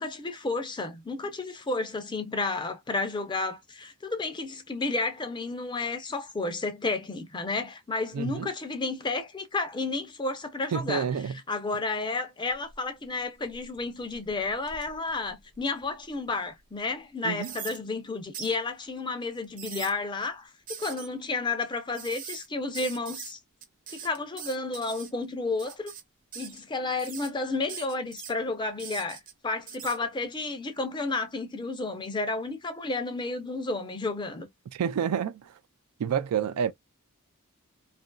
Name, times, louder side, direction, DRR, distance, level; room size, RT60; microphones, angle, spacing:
voice 1, 0.0-11.1 11.5-23.4 23.9-25.9 26.3-34.5, left 3 dB, 20° left, 0.5 m, -32 dB
voice 2, 8.1-8.5 10.7-11.4 17.2-17.5 34.7-35.5 36.0-36.7, right 7 dB, 80° right, 0.3 m, -29 dB
sound 1, 12.5-13.0 13.4-16.1 16.6-16.7 17.4-17.8 18.3-18.6 19.4-19.9 20.7-21.1 21.9-22.5 22.7-23.3 23.6-25.1 25.6-26.0 26.3-26.6 27.0-27.3 27.7-28.3 28.8-29.3 29.7-30.0, right 8 dB, 40° right, 0.6 m, -42 dB
2.8 x 2.5 x 2.2 m
head